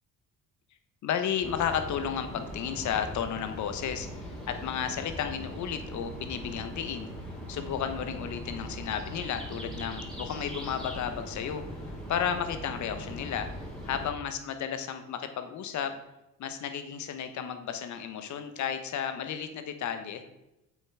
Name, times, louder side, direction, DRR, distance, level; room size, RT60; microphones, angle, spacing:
voice 1, 1.0-16.0 16.4-20.2, left 8 dB, 75° left, 8 dB, 1.1 m, -33 dB
sound 1, 1.4-14.1, equal, ahead, 3.0 m, -40 dB
7.7 x 5.9 x 4.7 m, 0.94 s
cardioid pair, 90°, 30 cm